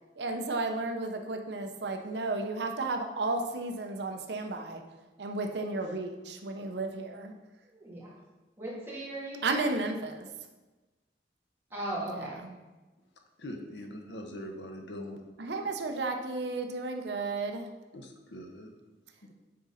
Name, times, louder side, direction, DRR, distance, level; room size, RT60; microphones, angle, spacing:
voice 1, 0.2-4.8 5.2-7.3 9.4-10.3 12.1-12.5 15.4-17.7, right 3 dB, 70° right, 4 dB, 0.7 m, -33 dB
voice 2, 7.7-8.1 8.6-9.7 11.7-12.4, right 1 dB, 15° right, -7 dB, 2.2 m, -38 dB
voice 3, 13.4-15.2 17.9-18.7, left 1 dB, 85° left, 4 dB, 0.9 m, -42 dB
7.7 x 3.9 x 5.6 m, 1.2 s
head